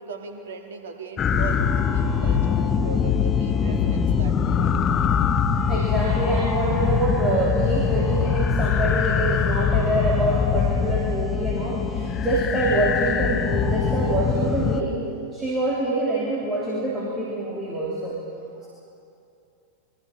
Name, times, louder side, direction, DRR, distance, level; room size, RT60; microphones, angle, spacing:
voice 1, 0.0-5.0, right 4 dB, 60° right, 4 dB, 2.1 m, -39 dB
sound 1, 1.2-14.8, left 6 dB, 25° left, 1.0 m, -23 dB
voice 2, 5.7-15.0 15.3-18.2, right 2 dB, 20° right, -4 dB, 3.4 m, -25 dB
26.5 x 22.5 x 4.5 m, 2.6 s
figure-of-eight pair, 90°, 0 cm